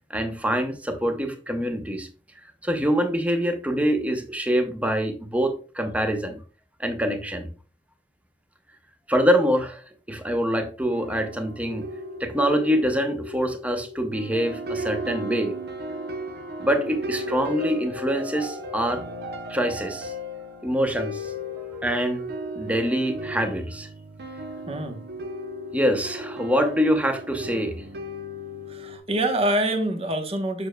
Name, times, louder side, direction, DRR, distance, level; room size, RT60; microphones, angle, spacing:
voice 1, 0.1-2.1 2.6-6.4 6.8-7.5 9.1-9.8 10.1-11.9 12.2-15.6 16.6-19.0 19.5-20.1 20.6-21.3 21.8-22.2 22.6-23.9 25.7-27.8, equal, 10° right, 6 dB, 0.8 m, -25 dB
sound 1, 10.9-29.0, equal, 65° right, 0.8 m, -35 dB
voice 2, 24.7-25.0 28.7-30.7, right 1 dB, 35° right, 6 dB, 1.0 m, -25 dB
6.9 x 6.6 x 2.3 m, 0.36 s
head